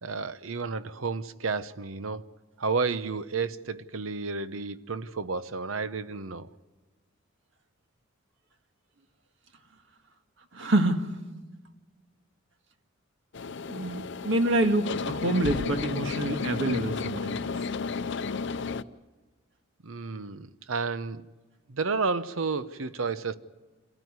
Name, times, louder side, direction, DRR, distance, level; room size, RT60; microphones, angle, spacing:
voice 1, 0.0-6.5 19.8-21.3 21.7-23.4, right 4 dB, 80° right, 0.9 m, -31 dB
voice 2, 10.5-11.1 13.7-17.5, right 1 dB, 65° right, 1.7 m, -27 dB
sound 1, 13.3-18.8, left 4 dB, 60° left, 0.6 m, -33 dB
27.0 x 14.0 x 9.6 m
head